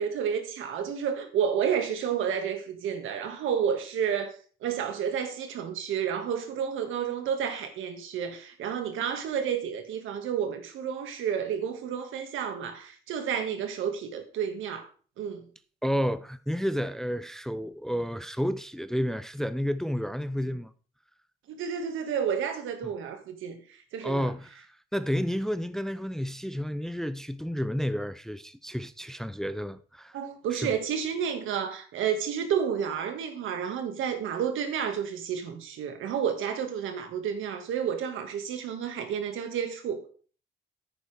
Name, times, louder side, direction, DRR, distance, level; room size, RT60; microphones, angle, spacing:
voice 1, 0.0-4.3 4.6-14.9 15.2-15.4 21.5-23.6 23.9-24.3 30.1-40.0, right 8 dB, 85° right, 1.9 m, -30 dB
voice 2, 15.8-20.7 24.0-24.7 24.9-30.2 30.5-30.7, equal, ahead, 0.5 m, -31 dB
10.0 x 9.3 x 3.4 m
cardioid pair, 90°, 20 cm